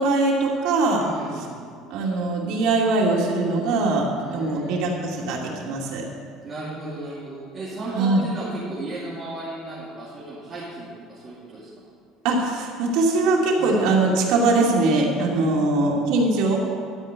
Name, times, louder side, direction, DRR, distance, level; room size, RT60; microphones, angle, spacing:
voice 1, 0.0-1.0 1.9-6.1 8.0-8.2 12.2-16.6, right 2 dB, 70° right, -2 dB, 2.6 m, -21 dB
voice 2, 1.0-1.5 4.2-4.9 6.4-11.7 13.6-13.9 15.2-15.8, right 2 dB, 25° right, -8 dB, 2.6 m, -35 dB
12.5 x 5.4 x 9.1 m, 2.2 s
cardioid pair, 150°, 0 cm